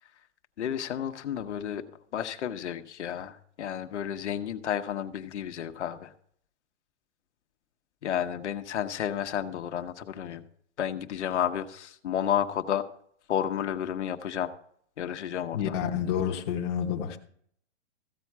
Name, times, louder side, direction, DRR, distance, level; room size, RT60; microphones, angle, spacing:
voice 1, 0.6-1.8 2.1-6.1 8.0-10.4 10.8-12.9 13.3-14.5 15.0-15.8, left 9 dB, 70° left, 1.1 m, -31 dB
voice 2, 15.5-17.2, left 8 dB, 20° left, 0.9 m, -29 dB
15.0 x 8.4 x 4.7 m
hypercardioid pair, 170°, 36 cm